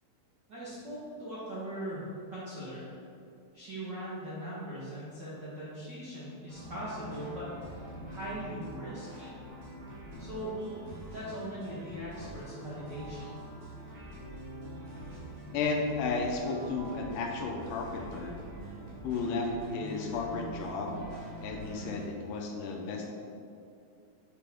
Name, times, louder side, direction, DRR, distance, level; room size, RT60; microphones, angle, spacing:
voice 1, 0.5-2.9 3.5-9.3 10.2-10.6 11.1-13.4, equal, 90° right, -9 dB, 0.9 m, -40 dB
sound 1, 6.5-22.1, equal, 65° right, 2.8 m, -44 dB
voice 2, 15.5-18.4 19.0-21.0 21.4-23.1, left 3 dB, 80° left, 0 dB, 2.1 m, -33 dB
7.5 x 4.9 x 3.5 m, 2.5 s
omnidirectional pair, 4.1 m